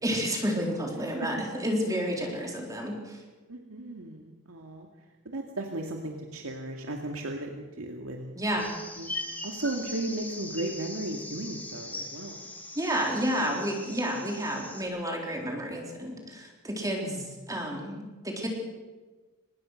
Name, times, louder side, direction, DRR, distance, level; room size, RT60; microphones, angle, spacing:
voice 1, 0.0-3.2 8.4-8.7 12.8-18.5, equal, 15° right, 0 dB, 3.9 m, -31 dB
voice 2, 3.5-4.9 5.2-8.3 9.0-9.1 9.4-12.5 17.0-17.3, right 1 dB, 80° right, 2 dB, 2.3 m, -36 dB
sound 1, 8.6-14.8, left 2 dB, 10° left, 3.2 m, -40 dB
25.5 x 20.0 x 6.6 m, 1.3 s
head